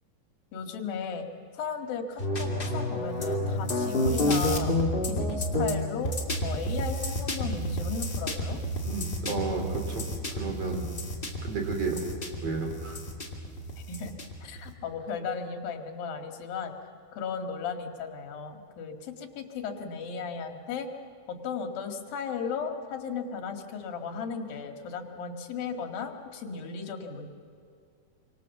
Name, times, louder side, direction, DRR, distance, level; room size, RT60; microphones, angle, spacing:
voice 1, 0.5-1.3 1.5-4.7 5.0-6.2 6.4-8.6 13.9-14.1 14.4-16.7 17.1-20.9 21.3-27.3, left 6 dB, 70° left, 4 dB, 3.7 m, -35 dB
sound 1, 2.2-14.7, left 1 dB, 20° left, 1.4 m, -30 dB
voice 2, 8.8-10.0 10.4-10.9 11.4-12.0 12.4-13.0, right 4 dB, 40° right, 2 dB, 4.2 m, -32 dB
27.5 x 25.0 x 7.2 m, 2.4 s
omnidirectional pair, 4.5 m